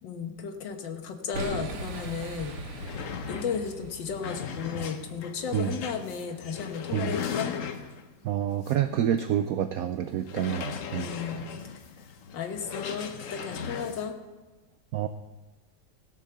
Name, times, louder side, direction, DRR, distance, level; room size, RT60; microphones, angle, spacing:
voice 1, 0.0-2.6 3.3-7.5 10.9-11.5 12.3-14.2, left 6 dB, 75° left, 5 dB, 1.8 m, -34 dB
Boom, 1.3-4.3, right 2 dB, 65° right, 1.9 m, -38 dB
sound 1, 2.1-2.2 2.4-8.1 8.6-8.8 9.2-9.3 10.2-14.1, left 7 dB, 55° left, 0.9 m, -37 dB
voice 2, 8.2-11.1 14.9-15.1, right 10 dB, 80° right, 9 dB, 0.8 m, -28 dB
17.0 x 6.3 x 6.8 m, 1.2 s
omnidirectional pair, 2.0 m